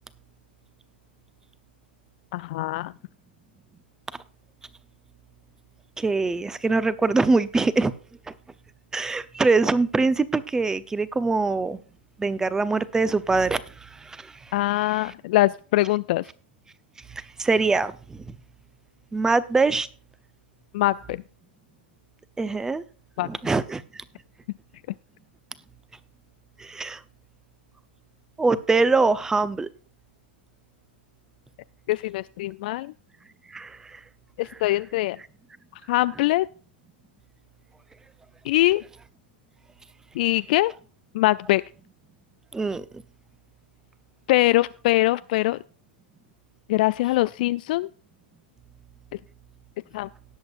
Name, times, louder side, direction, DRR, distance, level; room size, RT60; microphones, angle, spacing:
voice 1, 2.3-2.9 14.5-16.3 20.7-21.2 23.2-23.3 31.9-32.9 34.4-35.2 35.9-36.5 38.4-38.8 40.1-40.7 41.1-41.6 44.3-45.6 46.7-47.9 49.9-50.1, left 17 dB, 55° left, 15 dB, 0.4 m, -22 dB
voice 2, 6.0-7.9 8.9-11.8 12.2-14.3 17.1-18.2 19.1-19.9 22.4-22.8 23.2-24.0 26.6-27.0 28.4-29.7 33.5-34.0 42.5-42.8, right 3 dB, 10° right, 16 dB, 0.8 m, -23 dB
18.5 x 7.9 x 2.5 m, 0.40 s
hypercardioid pair, 115°, 6 cm